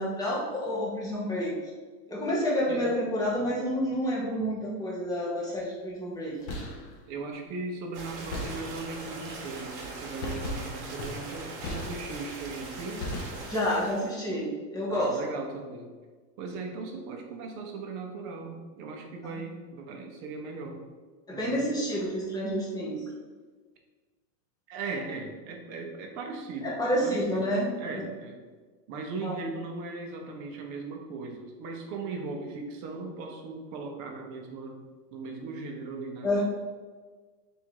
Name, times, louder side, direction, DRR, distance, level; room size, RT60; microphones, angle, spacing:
voice 1, 0.0-1.6 2.1-6.4 13.4-15.2 21.3-23.0 26.6-28.0 29.2-29.4 36.2-36.4, equal, 10° left, -5 dB, 0.8 m, -29 dB
sound 1, 6.3-7.0 8.3-9.1 10.2-12.4 13.0-13.8, left 1 dB, 25° left, 0.3 m, -37 dB
voice 2, 7.1-13.1 14.9-15.9 16.4-20.8 21.3-21.6 24.7-26.7 27.0-27.4 27.8-28.4 28.9-34.8 35.1-36.3, right 3 dB, 35° right, 2 dB, 0.7 m, -38 dB
sound 2, 7.9-14.1, right 3 dB, 80° right, 1.2 m, -41 dB
3.6 x 2.7 x 4.5 m, 1.4 s
supercardioid pair, 140°, 49 cm